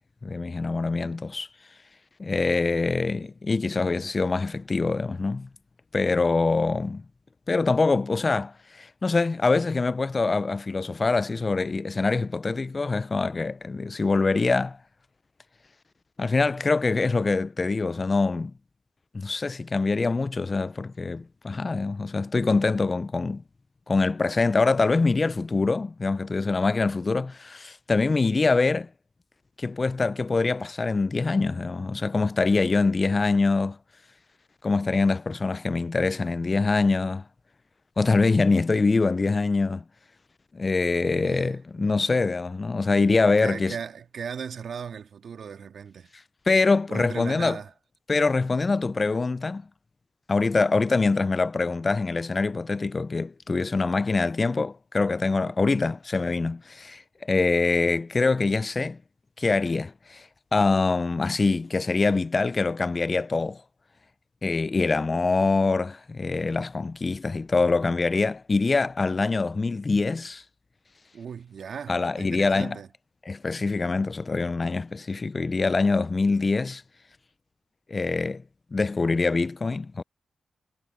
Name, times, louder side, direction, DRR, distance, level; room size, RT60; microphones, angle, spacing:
voice 1, 0.2-1.5 2.2-5.5 5.9-7.0 7.5-14.8 16.2-18.5 19.1-23.4 23.9-28.9 29.6-33.8 34.6-37.2 38.0-39.8 40.5-43.8 46.5-47.6 48.1-49.6 50.3-59.0 59.4-60.2 60.5-63.6 64.4-70.4 71.9-72.8 73.3-76.8 77.9-78.4 78.7-80.0, left 3 dB, 40° left, 0.5 m, -24 dB
voice 2, 41.1-42.0 43.2-46.1 46.9-47.7 55.6-55.8 71.1-72.9, right 7 dB, 70° right, 2.6 m, -38 dB
cardioid pair, 50°, 0 cm